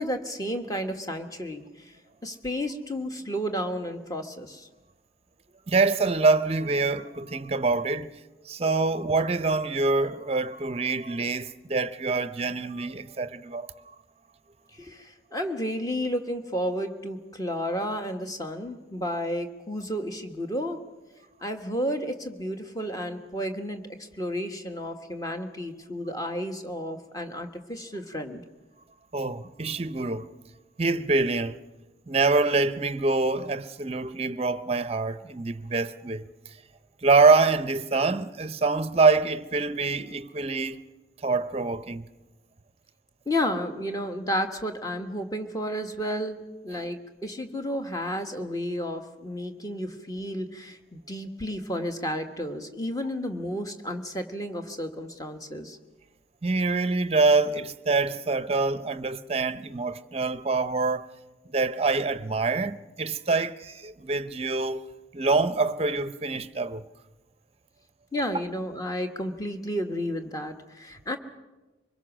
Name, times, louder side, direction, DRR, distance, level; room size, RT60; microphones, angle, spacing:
voice 1, 0.0-2.0 2.2-4.7 14.7-20.8 21.4-23.8 24.1-28.4 43.2-55.8 68.1-71.2, equal, 20° left, 1.5 m, -32 dB
voice 2, 5.7-8.1 8.5-13.7 29.1-30.3 30.8-31.6 32.1-36.3 37.0-40.8 41.2-42.0 56.4-61.1 61.5-64.8 65.1-66.8, right 3 dB, 30° right, 0.7 m, -25 dB
24.5 x 21.5 x 6.2 m
head